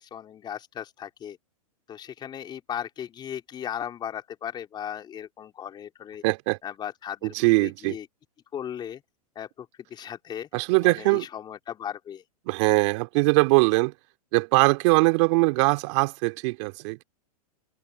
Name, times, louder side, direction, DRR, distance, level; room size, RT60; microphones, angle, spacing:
voice 1, 0.0-1.4 1.9-6.2 6.6-8.1 8.5-9.0 9.4-10.5 10.8-12.2, left 9 dB, 25° left, 3.6 m, -37 dB
voice 2, 6.2-6.6 7.2-8.0 10.5-11.3 12.5-13.9 14.3-17.0, right 27 dB, 50° right, 2.5 m, -21 dB
hypercardioid pair, 130°, 19 cm